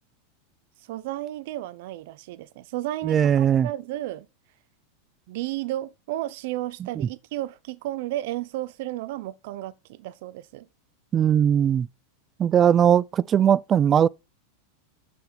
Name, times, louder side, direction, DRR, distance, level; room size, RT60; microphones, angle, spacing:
voice 1, 0.8-4.3 5.3-10.7, right 15 dB, 65° right, 0.7 m, -33 dB
voice 2, 3.0-3.7 11.1-11.9 12.4-14.1, right 9 dB, 30° right, 0.3 m, -19 dB
7.7 x 4.2 x 6.9 m
hypercardioid pair, 110°, 0 cm